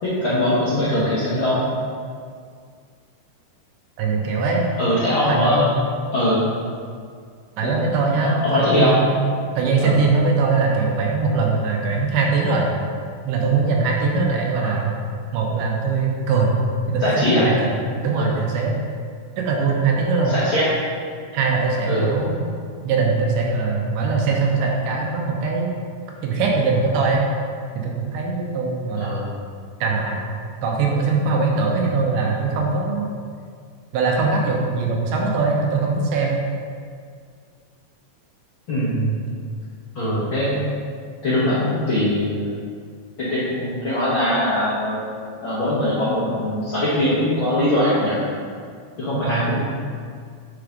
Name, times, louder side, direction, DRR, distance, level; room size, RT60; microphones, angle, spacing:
voice 1, 0.0-1.6 4.8-5.7 6.1-6.4 7.6-7.7 8.2-8.9 9.8-10.0 14.6-14.8 17.0-17.5 18.1-18.4 20.2-20.6 21.9-22.1 29.0-29.3 38.7-39.2 39.9-40.6 41.2-42.6 43.2-45.0 45.4-48.2 49.0-49.6, left 1 dB, 65° left, -9 dB, 1.3 m, -21 dB
voice 2, 4.0-4.6 5.3-5.8 7.6-9.1 9.6-12.7 13.3-15.0 15.3-16.5 16.9-17.7 18.0-18.8 19.4-20.4 21.3-22.4 22.8-25.7 26.2-27.3 27.8-29.2 29.8-30.2 30.6-33.1 33.9-36.4 49.2-49.5, right 4 dB, 75° right, -1 dB, 2.3 m, -21 dB
5.8 x 4.8 x 5.1 m, 2.1 s
omnidirectional pair, 3.8 m